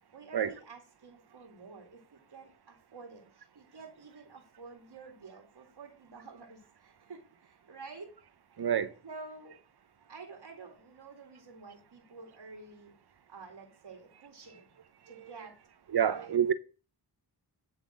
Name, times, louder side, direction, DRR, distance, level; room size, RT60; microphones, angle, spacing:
voice 1, 0.1-8.1 9.0-9.6 10.1-12.9 13.3-14.7 15.1-15.6 16.0-16.5, right 4 dB, 80° right, 2.3 m, -50 dB
voice 2, 8.6-8.9 15.1-15.4 15.9-16.5, right 9 dB, 65° right, 0.8 m, -28 dB
10.5 x 3.7 x 7.4 m
cardioid pair, 50°, 42 cm